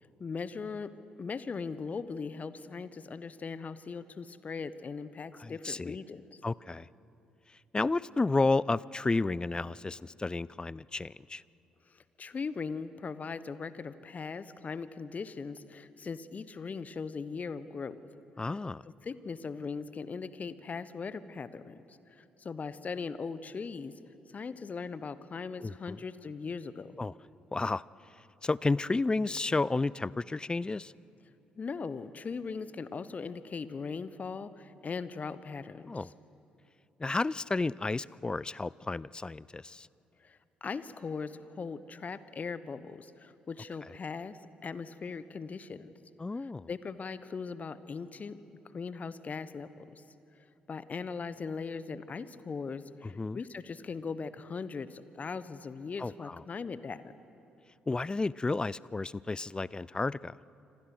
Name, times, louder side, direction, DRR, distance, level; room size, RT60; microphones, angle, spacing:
voice 1, 0.2-0.9 1.2-6.4 11.9-18.0 19.0-23.9 24.3-27.0 31.6-36.1 40.2-45.9 46.3-48.4 48.7-50.0 50.7-57.0, left 5 dB, 40° left, 15 dB, 1.1 m, -39 dB
voice 2, 5.4-6.0 6.4-6.9 7.7-11.4 18.4-18.8 25.6-26.0 27.0-27.1 27.5-27.8 28.4-30.9 35.9-36.1 37.0-39.9 46.2-46.7 53.2-53.4 56.0-56.4 57.9-60.3, left 3 dB, 20° left, 22 dB, 0.5 m, -31 dB
27.0 x 26.0 x 6.2 m, 2.8 s
figure-of-eight pair, 45°, 4 cm